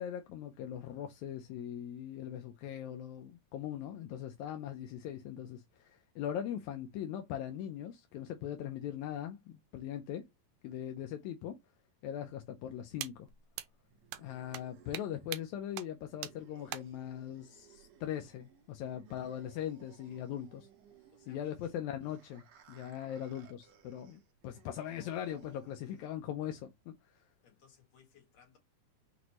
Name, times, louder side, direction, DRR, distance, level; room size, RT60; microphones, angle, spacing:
voice 1, 0.0-10.2 10.6-11.6 12.0-13.3 14.2-20.7 21.3-26.7, left 10 dB, 80° left, 1.8 m, -40 dB
sound 1, 13.0-13.1 13.6-13.7 14.1-14.2 14.5-14.6 14.9-15.0 15.3-15.4 15.8-15.9 16.2-16.3 16.7-16.8, right 14 dB, 85° right, 2.1 m, -39 dB
sound 2, 13.3-26.3, right 8 dB, 70° right, 1.8 m, -61 dB
voice 2, 21.1-21.8 22.8-23.1 24.1-24.2 27.4-28.6, left 7 dB, 55° left, 2.7 m, -63 dB
6.0 x 2.5 x 2.9 m
omnidirectional pair, 3.6 m